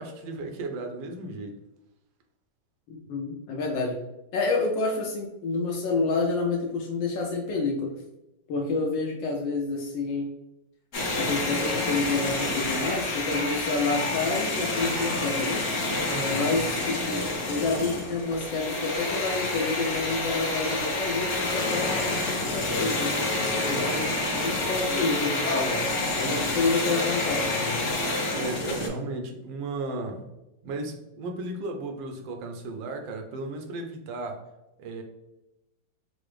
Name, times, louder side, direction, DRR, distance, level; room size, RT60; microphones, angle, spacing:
voice 1, 0.0-1.6 16.1-16.5 23.7-23.9 26.4-26.5 28.3-30.3 30.6-34.4 34.8-35.0, right 2 dB, 90° right, 4 dB, 1.4 m, -35 dB
voice 2, 2.9-4.0 4.3-7.9 8.5-10.3 11.2-15.6 16.3-23.1 23.4-25.9 26.1-27.8, left 3 dB, 80° left, 0 dB, 1.3 m, -29 dB
sound 1, 10.9-28.9, left 2 dB, 55° left, 0.9 m, -28 dB
4.8 x 2.0 x 3.1 m, 0.93 s
omnidirectional pair, 2.0 m